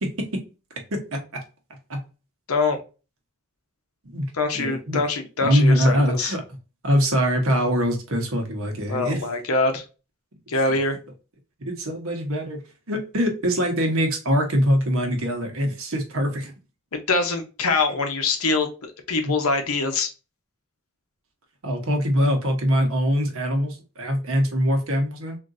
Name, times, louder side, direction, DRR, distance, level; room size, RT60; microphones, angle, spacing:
voice 1, 0.0-0.4 0.9-1.2 1.9-2.0 4.0-5.0 5.4-6.4 6.8-9.2 11.6-12.6 12.9-16.5 19.2-19.4 21.6-25.4, equal, 65° right, 3 dB, 1.0 m, -23 dB
voice 2, 2.5-2.8 4.3-6.3 8.9-9.8 10.5-11.0 16.9-20.1, left 3 dB, 75° left, 5 dB, 0.8 m, -24 dB
3.7 x 2.6 x 2.5 m, 0.32 s
head